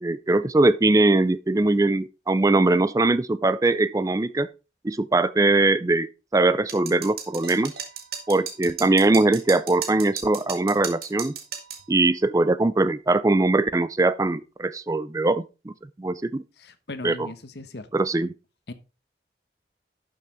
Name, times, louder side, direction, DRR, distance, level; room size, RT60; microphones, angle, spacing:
voice 1, 0.0-4.5 4.8-7.7 8.3-11.4 11.9-15.7 16.0-16.4 17.0-17.3 17.9-18.3, right 2 dB, 20° right, 0.4 m, -21 dB
sound 1, 6.7-11.8, right 8 dB, 60° right, 1.9 m, -35 dB
voice 2, 16.6-17.9 18.7-18.8, left 2 dB, 70° left, 1.1 m, -38 dB
11.5 x 6.7 x 3.6 m
head